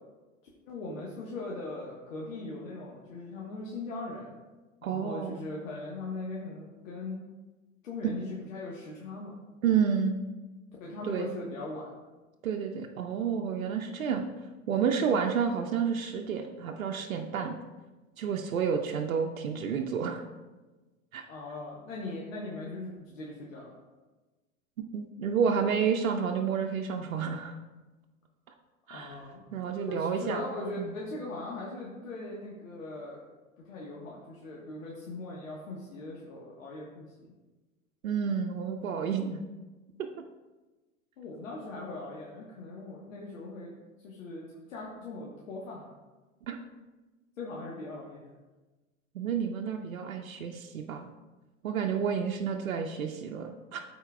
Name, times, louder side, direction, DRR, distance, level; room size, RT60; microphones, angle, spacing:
voice 1, 0.7-4.3 4.9-7.2 7.8-9.4 10.8-12.0 21.3-23.7 28.9-29.4 29.9-33.2 33.6-37.1 41.2-43.8 44.0-45.9 47.4-48.2, left 2 dB, 70° left, -4 dB, 1.3 m, -40 dB
voice 2, 4.8-5.4 9.6-10.2 11.0-11.3 12.4-14.2 14.7-17.6 18.2-20.2 21.1-21.2 24.9-27.6 28.9-29.2 29.5-30.4 30.8-30.9 38.0-39.4 46.5-46.6 49.1-51.1 51.6-53.8, right 7 dB, 80° right, 3 dB, 0.7 m, -30 dB
13.0 x 4.5 x 2.3 m, 1.2 s
hypercardioid pair, 95°, 40 cm